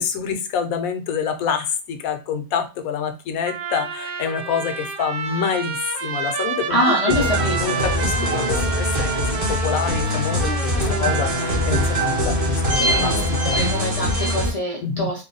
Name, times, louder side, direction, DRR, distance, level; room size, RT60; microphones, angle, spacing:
voice 1, 0.0-7.3 7.6-10.7 11.0-13.6 14.8-15.1, left 7 dB, 70° left, 7 dB, 1.0 m, -27 dB
Trumpet, 3.4-12.2, right 5 dB, 65° right, 0.5 m, -29 dB
voice 2, 6.7-7.6 7.9-8.0 13.5-15.2, equal, 50° left, -2 dB, 0.4 m, -24 dB
sound 1, 7.1-14.5, equal, 30° right, 0.8 m, -22 dB
3.2 x 2.2 x 3.8 m, 0.30 s
omnidirectional pair, 1.6 m